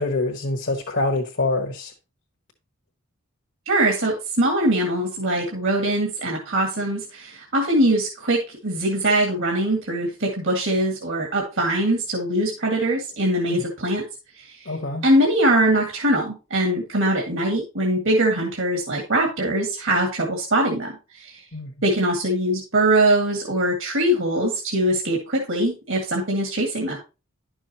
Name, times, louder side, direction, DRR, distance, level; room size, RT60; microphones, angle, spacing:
voice 1, 0.0-1.9 13.5-13.6 14.7-15.0 21.5-21.7, left 2 dB, 60° left, 1.3 m, -25 dB
voice 2, 3.7-14.0 14.4-14.7 15.0-21.4 21.8-27.0, right 1 dB, 65° right, 1.9 m, -22 dB
11.0 x 6.3 x 2.9 m
head